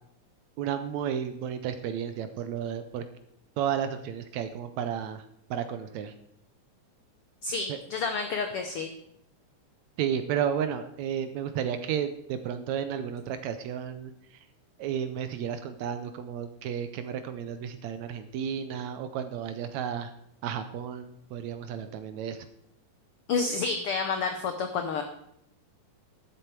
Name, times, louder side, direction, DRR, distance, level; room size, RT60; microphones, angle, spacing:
voice 1, 0.6-3.0 3.6-5.2 5.5-6.1 7.7-7.8 10.0-14.4 14.8-20.1 20.4-22.5, right 8 dB, 75° right, 9 dB, 1.8 m, -32 dB
voice 2, 7.4-8.9 23.3-25.0, left 4 dB, 90° left, 6 dB, 1.2 m, -29 dB
12.5 x 7.8 x 4.6 m, 0.75 s
omnidirectional pair, 3.6 m